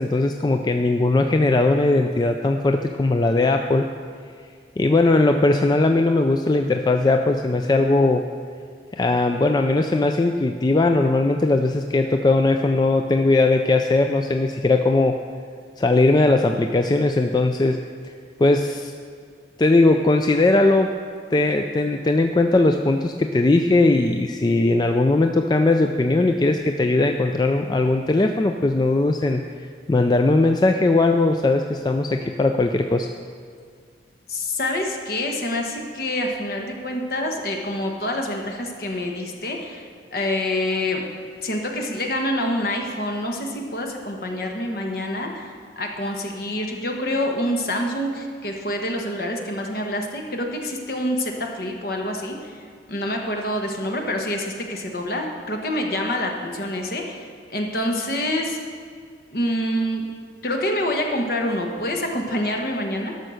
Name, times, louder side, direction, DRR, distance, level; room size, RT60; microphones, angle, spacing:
voice 1, 0.0-3.9 4.8-8.3 8.9-15.2 15.8-17.8 18.4-18.9 19.6-20.9 21.3-33.1, left 2 dB, 25° left, 5 dB, 0.3 m, -19 dB
voice 2, 34.3-41.0 41.4-58.6 59.3-60.0 60.4-63.1, left 1 dB, 55° left, 2 dB, 1.3 m, -26 dB
12.5 x 6.5 x 6.4 m, 2.1 s
head